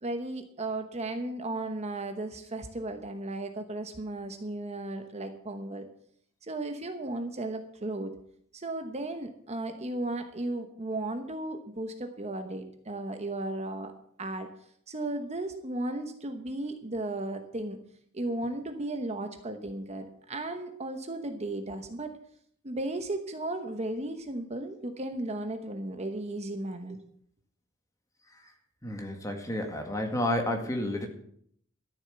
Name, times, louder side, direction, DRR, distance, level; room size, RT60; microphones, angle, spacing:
voice 1, 0.0-5.9 6.4-8.1 8.5-13.9 14.2-14.5 14.9-17.8 18.1-22.1 22.6-27.0, right 2 dB, 30° right, 6 dB, 1.0 m, -35 dB
voice 2, 28.8-31.1, left 1 dB, 15° left, 4 dB, 1.9 m, -30 dB
13.0 x 7.3 x 7.9 m, 0.67 s
head